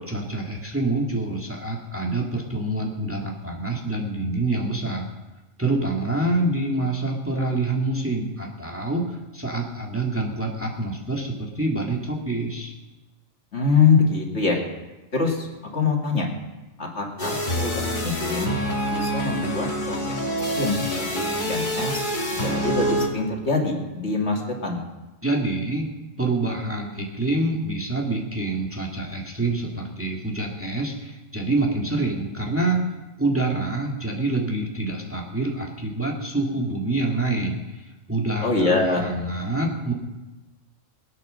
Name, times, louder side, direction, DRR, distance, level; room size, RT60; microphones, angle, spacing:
voice 1, 0.1-5.1 5.6-12.7 25.2-25.9 26.2-32.8 33.2-39.9, right 2 dB, 10° right, -1 dB, 2.1 m, -26 dB
voice 2, 13.5-14.6 15.1-15.5 15.7-16.3 16.8-18.6 18.9-20.2 20.5-22.0 22.4-24.8 38.4-39.1, left 4 dB, 55° left, 0 dB, 2.6 m, -24 dB
sound 1, 17.2-23.1, equal, 35° left, 2.3 m, -26 dB
21.0 x 9.3 x 6.4 m, 1.1 s
omnidirectional pair, 1.3 m